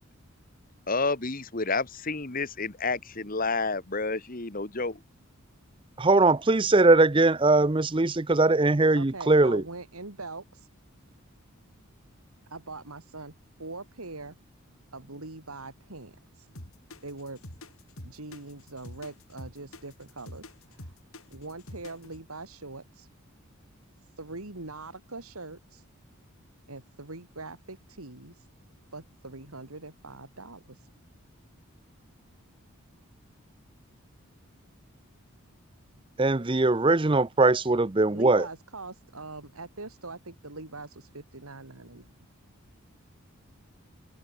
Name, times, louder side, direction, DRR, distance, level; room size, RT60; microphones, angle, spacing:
voice 1, 0.9-5.0, left 3 dB, 40° left, 1.5 m, -30 dB
voice 2, 6.0-9.6 36.2-38.4, right 2 dB, 25° right, 0.6 m, -21 dB
voice 3, 8.9-10.7 12.5-13.3 13.6-14.3 14.9-16.5 17.0-17.4 18.0-20.4 20.7-20.9 21.3-23.1 24.2-25.8 26.7-28.5 28.9-30.9 38.1-42.1, right 3 dB, 85° right, 3.0 m, -42 dB
sound 1, 16.5-22.2, left 1 dB, 75° left, 6.8 m, -45 dB
open air
head